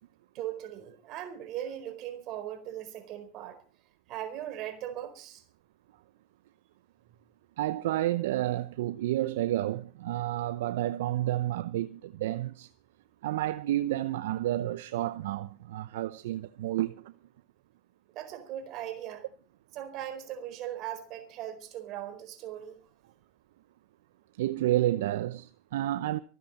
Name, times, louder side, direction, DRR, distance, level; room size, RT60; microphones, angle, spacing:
voice 1, 0.3-3.6 4.1-5.4 18.1-19.3 19.7-22.8, right 11 dB, 50° right, 4.4 m, -39 dB
voice 2, 7.6-12.7 13.2-17.1 24.4-26.2, right 14 dB, 75° right, 0.7 m, -30 dB
26.0 x 9.5 x 4.2 m
hypercardioid pair, 95°, 0 cm